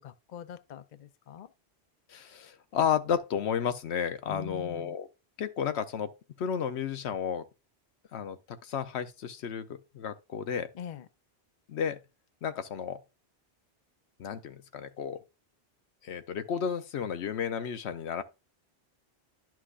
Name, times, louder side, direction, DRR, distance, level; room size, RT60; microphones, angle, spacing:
voice 1, 0.0-1.5 4.3-5.0 10.7-11.1, left 9 dB, 50° left, 0.6 m, -43 dB
voice 2, 2.1-5.1 5.4-6.1 6.4-7.4 8.1-10.7 11.7-12.0 12.4-13.0 14.2-15.2 16.0-18.2, left 7 dB, 85° left, 1.0 m, -32 dB
11.0 x 6.0 x 2.4 m
omnidirectional pair, 1.1 m